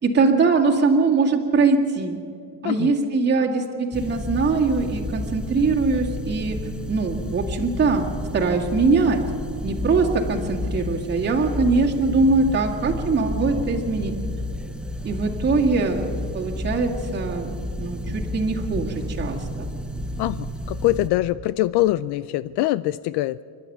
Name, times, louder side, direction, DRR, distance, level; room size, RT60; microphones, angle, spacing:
voice 1, 0.0-2.2 2.6-6.6 6.9-8.0 8.3-9.2 9.6-14.1 15.0-19.7, right 4 dB, 25° right, -1 dB, 2.0 m, -22 dB
sound 1, 3.9-21.1, left 1 dB, ahead, 0.9 m, -31 dB
voice 2, 20.2-23.4, left 16 dB, 65° left, 17 dB, 0.5 m, -23 dB
27.5 x 11.5 x 9.2 m, 2.5 s
cardioid pair, 170°, 43 cm